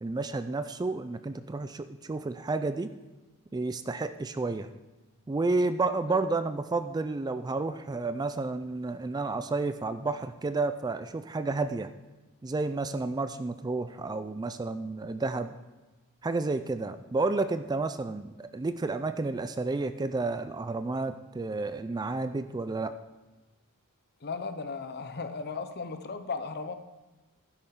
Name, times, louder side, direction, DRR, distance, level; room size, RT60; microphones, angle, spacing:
voice 1, 0.0-2.9 3.5-4.7 5.3-11.9 12.4-15.5 16.2-22.9, right 3 dB, 20° right, 11 dB, 0.3 m, -31 dB
voice 2, 24.2-26.7, left 4 dB, 45° left, 9 dB, 0.8 m, -36 dB
11.5 x 10.0 x 3.7 m, 1.2 s
head